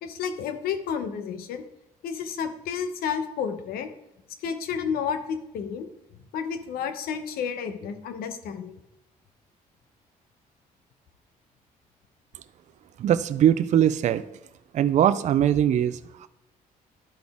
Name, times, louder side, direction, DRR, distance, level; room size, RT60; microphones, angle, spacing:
voice 1, 0.0-1.6 2.0-3.9 4.4-5.9 6.3-8.8, left 7 dB, 85° left, 9 dB, 0.8 m, -31 dB
voice 2, 13.0-14.2 14.7-16.3, right 10 dB, 50° right, 13 dB, 0.4 m, -21 dB
11.5 x 4.0 x 3.5 m, 0.89 s
cardioid pair, 100°, 15 cm